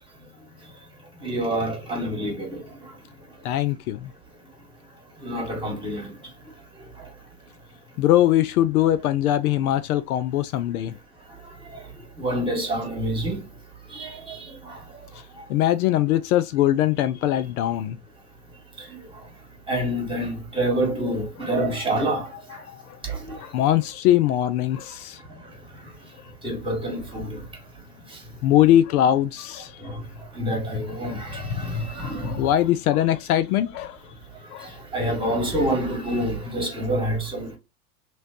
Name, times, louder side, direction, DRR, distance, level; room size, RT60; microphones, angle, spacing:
voice 1, 1.2-2.6 5.2-6.1 12.2-13.4 13.9-14.8 18.8-18.9 19.7-22.3 23.1-23.4 26.4-27.4 29.8-30.0 30.3-32.4 34.9-37.6, right 1 dB, 10° right, 1.9 m, -27 dB
voice 2, 3.4-4.1 8.0-11.0 15.5-18.0 22.9-23.0 23.4-25.2 28.4-29.7 32.0-34.0 34.5-34.7 35.2-35.3, left 12 dB, 65° left, 0.6 m, -21 dB
3.0 x 3.0 x 2.8 m
hypercardioid pair, 100°, 47 cm